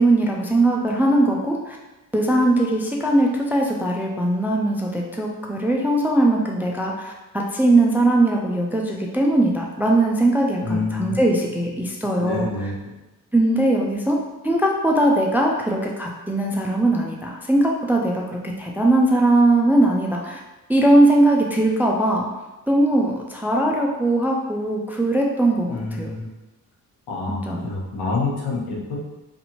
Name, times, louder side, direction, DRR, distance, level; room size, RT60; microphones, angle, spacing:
voice 1, 0.0-1.8 2.1-12.5 13.3-14.2 14.4-20.4 20.7-22.3 22.7-26.1 27.3-27.7, right 1 dB, 5° right, -1 dB, 0.3 m, -20 dB
voice 2, 10.6-11.2 12.2-12.9 25.7-26.3 27.1-29.0, left 3 dB, 75° left, -3 dB, 0.9 m, -27 dB
2.6 x 2.5 x 2.8 m, 1.1 s
cardioid pair, 70°, 39 cm